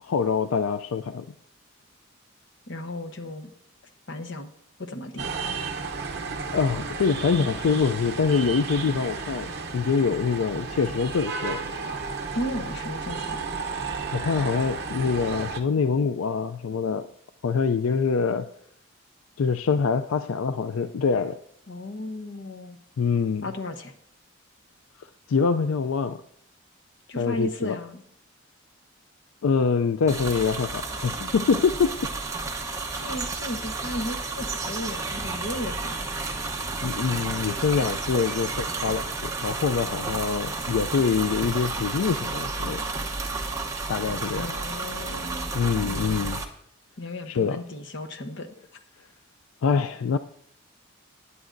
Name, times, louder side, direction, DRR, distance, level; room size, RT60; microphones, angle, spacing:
voice 1, 0.0-1.3 6.5-11.7 14.1-17.1 17.4-18.5 19.4-21.4 23.0-23.5 25.0-26.2 27.2-27.7 29.4-32.0 36.8-42.9 43.9-44.5 45.5-46.4 47.3-47.6 49.6-50.2, left 5 dB, 85° left, 10 dB, 0.4 m, -25 dB
voice 2, 2.7-3.5 4.1-4.5 4.8-5.7 12.3-13.4 21.7-22.8 23.4-23.9 27.1-28.0 32.9-36.0 44.4-45.5 45.8-46.4 47.0-48.8, left 1 dB, 60° left, 8 dB, 0.9 m, -35 dB
sound 1, 5.2-15.6, right 4 dB, 50° right, 0.8 m, -33 dB
sound 2, 30.1-46.4, right 3 dB, 15° right, 0.8 m, -31 dB
17.5 x 9.7 x 2.6 m, 0.69 s
head